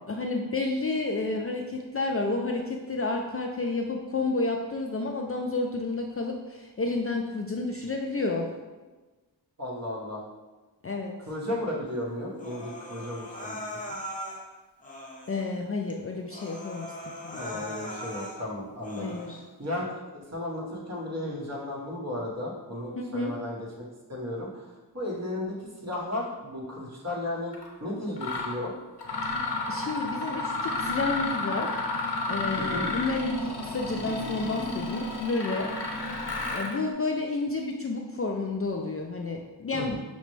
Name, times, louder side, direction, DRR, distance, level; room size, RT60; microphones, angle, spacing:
voice 1, 0.1-8.5 10.8-11.1 15.3-16.9 17.2-17.7 19.0-19.4 23.0-23.3 29.7-31.9 32.3-35.7 36.5-40.0, left 3 dB, 35° left, 1 dB, 0.4 m, -30 dB
voice 2, 9.6-10.2 11.3-13.6 13.9-14.0 17.4-19.3 19.6-19.9 20.1-23.6 24.1-24.6 24.9-25.6 25.8-27.5 27.8-28.7 32.6-32.9 39.8-40.0, left 1 dB, 40° right, -4 dB, 1.2 m, -34 dB
Human voice, 12.4-14.4 14.8-15.5 15.9-16.0 16.3-18.4 18.8-19.4, equal, 20° left, 0.8 m, -39 dB
Mechanisms, 27.5-27.7 28.2-28.6 29.0-36.8, left 2 dB, 65° left, 0.9 m, -31 dB
5.8 x 2.1 x 3.1 m, 1.2 s
cardioid pair, 50°, 43 cm